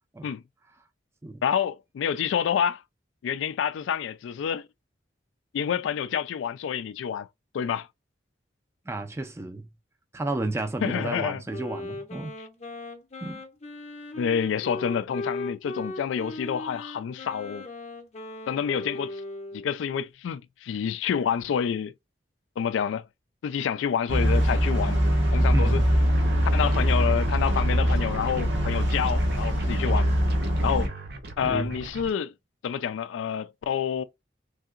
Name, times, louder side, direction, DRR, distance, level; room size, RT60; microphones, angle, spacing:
voice 1, 1.4-2.8 3.2-4.7 5.5-7.3 7.5-7.9 10.8-11.4 14.1-17.7 18.5-19.2 19.5-21.9 22.6-23.1 23.4-25.0 25.3-25.8 26.5-30.1 30.6-30.9 31.4-32.3 32.6-34.0, left 8 dB, 90° left, 0.3 m, -28 dB
voice 2, 8.9-9.7 10.1-12.3 13.2-13.4 25.5-25.9 31.4-31.8, right 2 dB, 15° right, 0.3 m, -32 dB
Wind instrument woodwind instrument, 11.5-19.7, left 2 dB, 35° left, 0.7 m, -38 dB
sound 1, 24.1-30.9, equal, 85° right, 1.2 m, -23 dB
sound 2, 26.1-32.1, right 2 dB, 55° right, 0.7 m, -39 dB
3.3 x 2.8 x 2.4 m
head